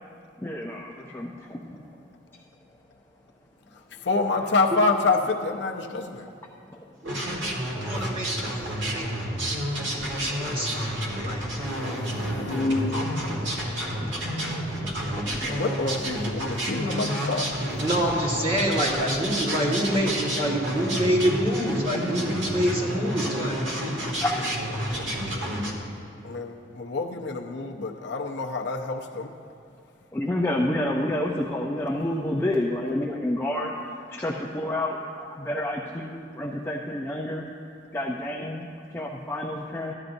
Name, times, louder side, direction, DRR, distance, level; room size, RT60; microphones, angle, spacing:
voice 1, 0.4-1.8 6.7-7.3 13.4-13.6 13.8-15.6 16.9-17.0 21.8-22.3 23.2-24.7 25.3-25.4 30.1-37.5 37.9-38.7 38.9-39.9, left 1 dB, 10° left, -2 dB, 0.4 m, -30 dB
voice 2, 4.0-6.2 11.6-13.5 14.4-14.8 15.4-17.5 23.2-23.5 23.9-24.1 26.2-29.3, left 3 dB, 60° left, 2 dB, 0.6 m, -28 dB
voice 3, 7.0-9.6 10.1-11.4 17.6-23.6, equal, 25° right, -4 dB, 1.4 m, -27 dB
sound 1, 7.0-25.7, equal, 70° right, 1.4 m, -30 dB
14.0 x 10.5 x 2.6 m, 2.5 s
head